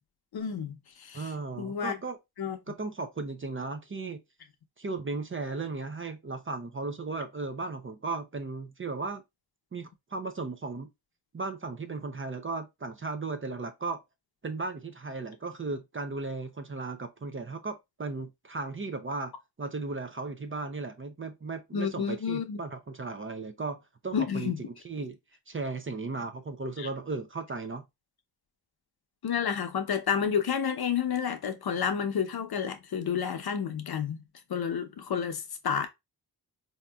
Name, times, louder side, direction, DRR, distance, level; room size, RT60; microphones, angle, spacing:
voice 1, 0.3-0.7 1.0-1.2 1.6-1.9 2.4-2.6 21.7-22.6 24.1-24.6 26.8-26.9 29.2-34.2 34.5-35.9, left 7 dB, 60° left, 0.7 m, -30 dB
voice 2, 1.1-2.2 2.7-4.2 4.8-9.2 9.7-10.9 11.3-14.0 14.4-19.3 19.6-24.5 24.8-25.2 25.5-27.8, right 3 dB, 30° right, 0.5 m, -36 dB
3.9 x 2.8 x 2.3 m
wide cardioid pair, 85°, 43 cm